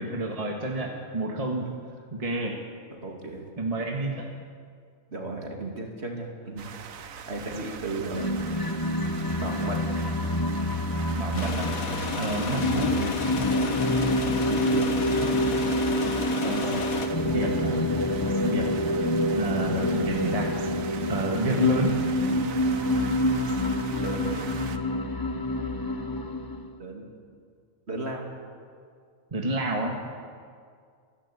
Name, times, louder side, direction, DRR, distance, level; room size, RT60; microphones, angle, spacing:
voice 1, 0.0-1.8 2.1-2.6 3.6-4.3 11.2-11.8 12.2-13.0 16.4-16.9 17.2-17.9 18.4-18.7 19.4-20.5 21.1-22.0 29.3-30.1, right 1 dB, 25° right, 1 dB, 1.8 m, -29 dB
voice 2, 2.9-3.5 5.1-6.7 7.3-8.3 9.4-9.8 14.5-14.9 23.9-24.6 26.8-27.1 27.9-28.3, right 2 dB, 50° right, 1 dB, 2.9 m, -34 dB
sound 1, 6.6-24.8, right 7 dB, 75° right, 1.4 m, -40 dB
sound 2, 8.1-26.7, left 1 dB, 20° left, 0.7 m, -27 dB
sound 3, 11.3-17.1, left 4 dB, 85° left, 1.9 m, -32 dB
29.5 x 12.0 x 8.5 m, 2.1 s
omnidirectional pair, 1.4 m